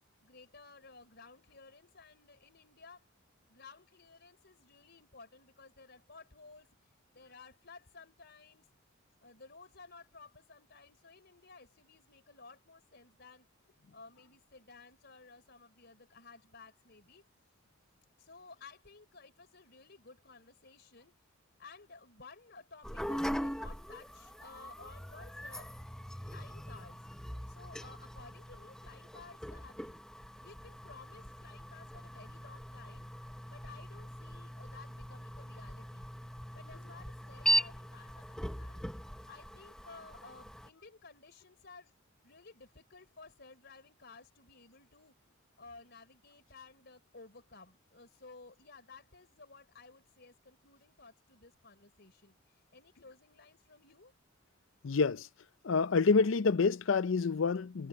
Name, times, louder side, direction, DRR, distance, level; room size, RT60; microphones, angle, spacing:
voice 1, 0.2-3.1 3.5-8.7 9.2-13.5 13.9-17.2 18.2-21.2 21.6-25.7 26.2-27.0 27.5-30.0 30.4-33.1 33.5-36.1 36.5-38.8 39.1-41.9 42.2-45.1 45.6-54.1, left 4 dB, 55° left, 3.8 m, -55 dB
sound 1, 22.8-40.7, equal, 5° left, 0.8 m, -40 dB
voice 2, 54.8-55.3 55.6-57.9, left 4 dB, 70° left, 0.5 m, -27 dB
head